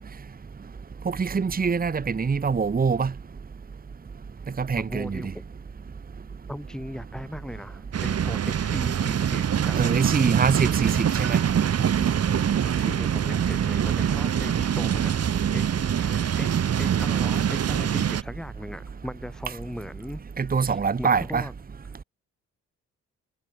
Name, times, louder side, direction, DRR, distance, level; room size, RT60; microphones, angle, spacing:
voice 1, 1.0-3.1 4.6-5.2 9.7-11.4 20.4-21.5, right 5 dB, 30° right, 1.6 m, -24 dB
voice 2, 4.8-5.4 6.5-9.8 12.7-15.1 15.5-15.6 15.9-16.5 16.8-20.2 20.6-21.5, equal, ahead, 6.6 m, -38 dB
sound 1, 7.9-18.2, right 8 dB, 55° right, 3.0 m, -24 dB
cardioid pair, 90°, 30 cm